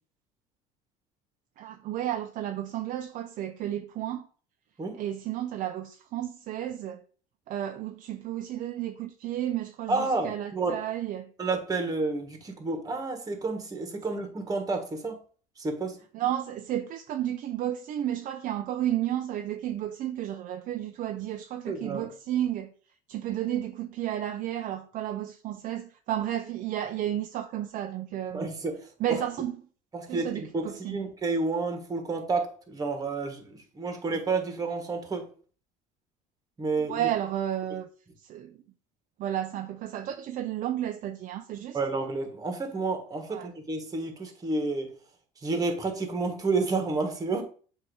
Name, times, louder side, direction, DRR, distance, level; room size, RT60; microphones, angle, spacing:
voice 1, 1.6-4.3 4.9-7.0 7.5-11.3 16.1-22.7 23.1-28.5 29.0-29.6 30.1-31.0 36.9-37.9 38.3-38.6 39.2-41.8 43.3-43.5, right 12 dB, 50° right, 0.5 m, -32 dB
voice 2, 9.9-10.7 11.4-15.2 15.6-16.0 21.7-22.1 28.3-28.8 29.9-35.3 36.6-37.1 41.7-44.9 45.4-47.4, right 3 dB, 20° right, 1.4 m, -30 dB
7.6 x 2.8 x 4.8 m
cardioid pair, 120°, 17 cm